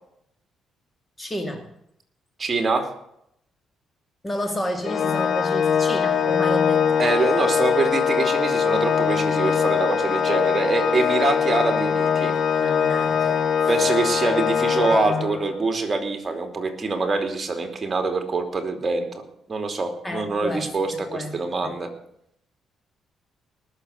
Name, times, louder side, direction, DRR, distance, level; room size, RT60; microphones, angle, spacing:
voice 1, 1.2-1.7 4.2-7.0 12.6-13.7 20.0-21.8, equal, 15° left, 6 dB, 1.8 m, -31 dB
voice 2, 2.4-2.9 7.0-12.3 13.7-19.2 19.5-21.9, right 3 dB, 30° right, 5 dB, 3.0 m, -24 dB
Organ, 4.8-15.6, left 7 dB, 55° left, 0.9 m, -22 dB
20.0 x 7.0 x 8.3 m, 0.75 s
cardioid pair, 90°, 0 cm